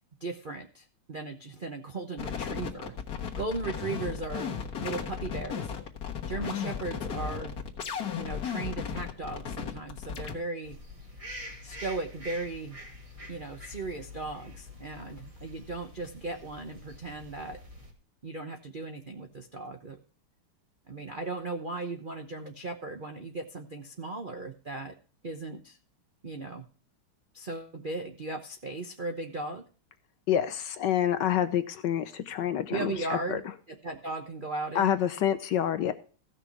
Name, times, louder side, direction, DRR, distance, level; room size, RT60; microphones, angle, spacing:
voice 1, 0.2-4.6 4.8-5.7 6.3-7.6 8.2-10.8 11.6-12.8 13.3-17.6 18.2-20.0 20.9-24.9 25.2-25.8 26.2-26.7 27.3-29.6 32.7-33.4 33.7-34.9, right 3 dB, 80° right, 5 dB, 0.4 m, -37 dB
sound 1, 2.2-10.3, left 7 dB, 50° left, 1.7 m, -35 dB
sound 2, 10.6-17.9, left 1 dB, 15° right, 2.1 m, -46 dB
voice 2, 30.3-33.4 34.7-35.9, left 10 dB, 65° left, 11 dB, 1.1 m, -27 dB
15.5 x 6.1 x 4.6 m, 0.39 s
omnidirectional pair, 2.4 m